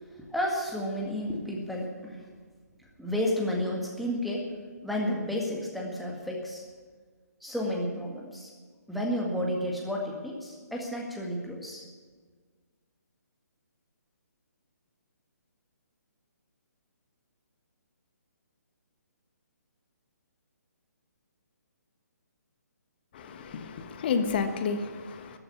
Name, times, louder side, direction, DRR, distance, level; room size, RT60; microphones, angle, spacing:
voice 1, 0.0-2.2 3.0-4.5 4.8-6.6 7.4-8.5 8.9-11.9, equal, ahead, -1 dB, 1.9 m, -31 dB
voice 2, 23.1-25.4, left 5 dB, 35° left, 8 dB, 1.3 m, -31 dB
14.0 x 9.3 x 9.7 m, 1.5 s
figure-of-eight pair, 135°, 9 cm